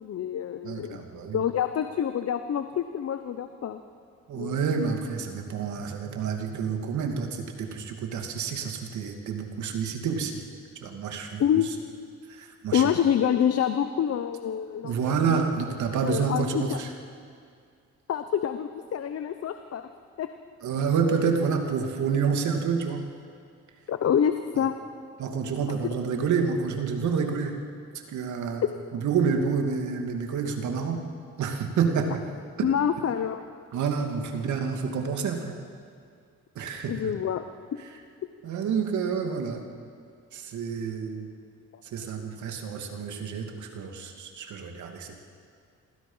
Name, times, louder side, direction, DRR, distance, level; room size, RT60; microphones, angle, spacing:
voice 1, 0.0-1.0 1.3-3.8 4.3-4.6 11.4-11.7 12.7-15.5 16.0-16.8 18.1-19.9 20.2-20.3 23.9-24.7 32.6-33.4 36.9-37.4, left 9 dB, 55° left, 9 dB, 1.0 m, -27 dB
voice 2, 0.6-1.4 4.3-10.4 10.8-11.4 12.3-12.9 14.8-16.9 20.6-23.0 25.2-27.6 28.1-28.6 28.9-31.0 31.4-32.2 32.6-32.7 33.7-35.6 36.6-37.1 38.4-39.6 40.3-41.3 41.9-45.2, right 6 dB, 75° right, 4 dB, 2.5 m, -28 dB
26.5 x 20.5 x 5.7 m, 2.2 s
cardioid pair, 90°, 30 cm